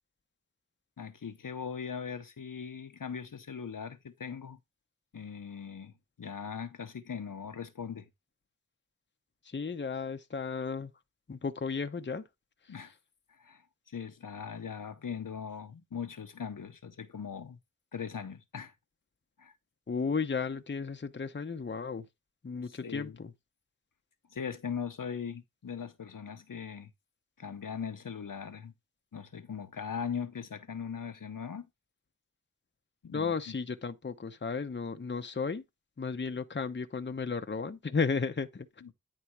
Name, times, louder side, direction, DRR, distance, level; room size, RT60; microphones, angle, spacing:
voice 1, 1.0-4.6 5.1-5.9 6.2-8.1 12.7-12.9 13.4-17.6 17.9-18.7 19.4-19.5 22.6-23.2 24.3-26.9 27.4-28.7 29.1-31.7 33.0-33.5 38.8-38.9, left 7 dB, 75° left, 0.9 m, -40 dB
voice 2, 9.4-10.9 11.3-12.2 19.9-22.1 22.4-23.3 33.1-35.6 36.0-38.7, left 5 dB, 35° left, 0.8 m, -34 dB
10.0 x 3.4 x 4.6 m
wide cardioid pair, 65°, 33 cm